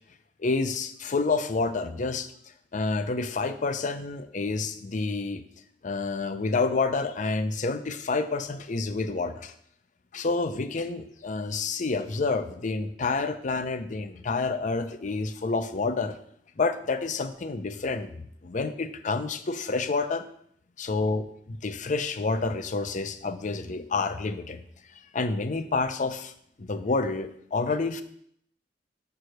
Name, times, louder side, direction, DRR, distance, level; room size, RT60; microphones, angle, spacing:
voice 1, 0.4-2.3 2.7-5.4 5.8-9.5 10.1-16.2 16.6-20.3 20.8-24.6 25.1-26.3 26.6-28.0, left 3 dB, 45° left, 10 dB, 0.6 m, -29 dB
7.0 x 4.8 x 6.4 m, 0.68 s
head